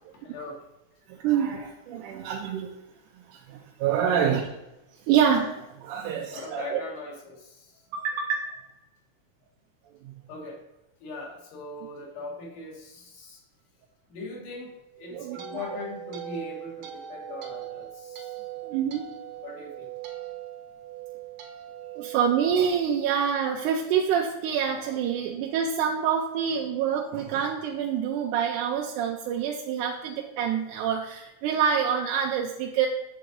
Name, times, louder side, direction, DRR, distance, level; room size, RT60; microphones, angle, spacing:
voice 1, 0.1-0.6 4.0-4.4 6.0-7.8 10.3-10.6 11.0-13.4 14.1-18.4 19.4-19.9, left 2 dB, 85° left, -2 dB, 3.1 m, -39 dB
voice 2, 1.1-2.8 3.5-4.4 5.1-6.8 7.9-8.5 15.1-15.7 18.6-19.1 22.0-32.9, right 8 dB, 90° right, 0 dB, 2.1 m, -26 dB
sound 1, 14.9-23.2, right 11 dB, 70° right, 1.3 m, -41 dB
8.1 x 3.8 x 5.1 m, 0.98 s
omnidirectional pair, 3.5 m